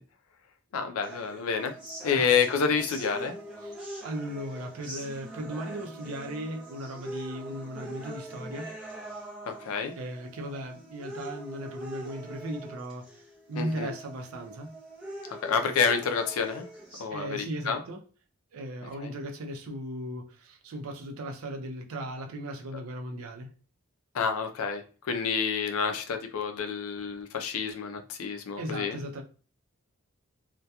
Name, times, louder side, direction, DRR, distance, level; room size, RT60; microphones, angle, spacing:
voice 1, 0.7-1.7 2.0-3.3 9.5-9.9 13.6-13.9 15.3-16.6 17.0-17.8 19.0-19.1 24.1-29.0, left 6 dB, 85° left, 0.4 m, -28 dB
sound 1, 1.0-17.0, right 1 dB, 5° right, 0.5 m, -43 dB
voice 2, 2.0-2.5 3.6-8.8 9.9-13.1 13.5-14.8 17.1-18.0 18.5-23.5 28.6-29.2, right 1 dB, 85° right, 0.5 m, -37 dB
2.7 x 2.2 x 2.2 m
head